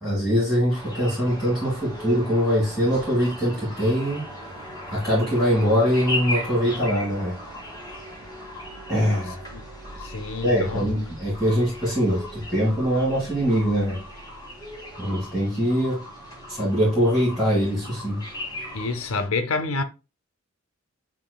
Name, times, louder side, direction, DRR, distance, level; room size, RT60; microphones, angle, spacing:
voice 1, 0.0-7.4 8.9-9.4 10.4-14.0 15.0-16.0 16.5-18.2, equal, ahead, 1.8 m, -23 dB
sound 1, 0.7-19.2, equal, 20° left, 2.3 m, -37 dB
voice 2, 10.0-10.9 18.7-19.8, left 3 dB, 75° left, 0.6 m, -28 dB
7.4 x 3.0 x 2.3 m
head